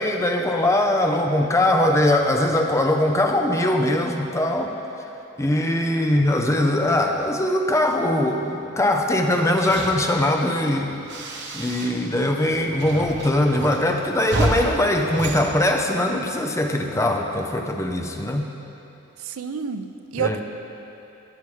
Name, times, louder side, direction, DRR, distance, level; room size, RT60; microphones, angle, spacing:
voice 1, 0.0-4.7 5.4-11.0 11.5-18.5 20.2-20.4, left 1 dB, 15° left, 3 dB, 0.6 m, -21 dB
sound 1, 9.2-12.2 12.4-16.3, right 1 dB, 55° right, 1.0 m, -31 dB
voice 2, 19.2-20.4, right 6 dB, 70° right, 9 dB, 0.5 m, -29 dB
13.5 x 9.8 x 3.2 m, 2.9 s
head